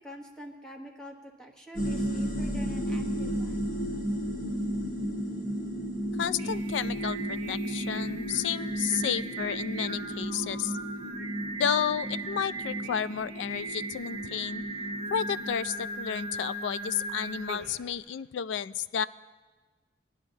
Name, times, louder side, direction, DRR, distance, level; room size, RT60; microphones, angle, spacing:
voice 1, 0.0-3.7, equal, 5° left, 1 dB, 1.0 m, -45 dB
sound 1, 1.8-15.5, equal, 50° left, 1.4 m, -34 dB
voice 2, 6.2-10.8 11.6-14.6 15.1-19.0, left 8 dB, 85° left, 17 dB, 0.3 m, -31 dB
Singing, 6.2-17.9, right 2 dB, 35° right, 1.3 m, -38 dB
20.0 x 10.5 x 2.7 m, 1.3 s
head